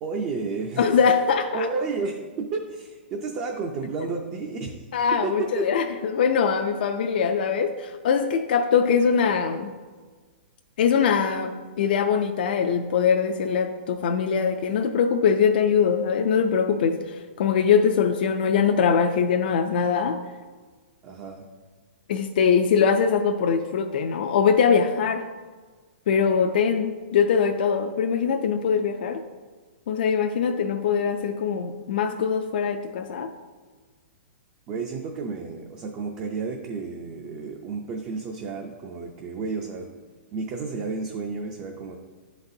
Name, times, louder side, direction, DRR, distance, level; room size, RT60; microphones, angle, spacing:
voice 1, 0.0-0.8 1.5-4.9 5.2-5.7 21.0-21.5 34.7-39.9 40.3-41.9, right 4 dB, 20° right, 2 dB, 0.4 m, -31 dB
voice 2, 0.8-1.7 4.9-5.8 6.1-9.7 10.8-20.2 22.1-25.3 26.1-29.2 29.9-33.3, left 6 dB, 50° left, 5 dB, 0.3 m, -22 dB
9.8 x 4.0 x 2.6 m, 1.4 s
hypercardioid pair, 165°, 6 cm